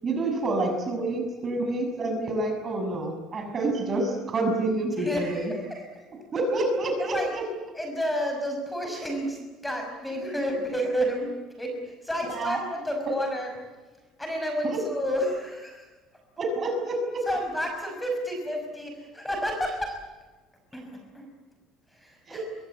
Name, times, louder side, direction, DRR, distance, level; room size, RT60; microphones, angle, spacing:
voice 1, 0.0-5.5 6.3-7.5 12.3-12.6 13.0-13.2 14.6-14.8 16.4-17.3 22.3-22.4, right 2 dB, 25° right, 4 dB, 6.5 m, -28 dB
voice 2, 5.0-6.0 7.0-7.3 7.7-11.3 11.6-13.5 14.2-15.9 17.3-20.0 20.7-21.3 21.9-22.5, equal, 5° left, 3 dB, 5.6 m, -31 dB
27.0 x 24.0 x 8.4 m, 1.3 s
cardioid pair, 160°, 0 cm